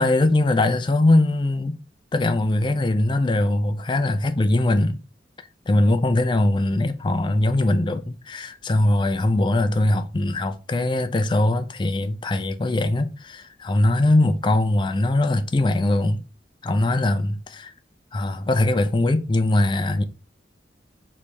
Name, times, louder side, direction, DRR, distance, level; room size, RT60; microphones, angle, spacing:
voice 1, 0.0-1.8 2.1-5.0 5.7-16.2 16.6-17.7 18.1-20.0, left 2 dB, 25° left, 0.4 m, -21 dB
3.3 x 3.1 x 4.2 m
head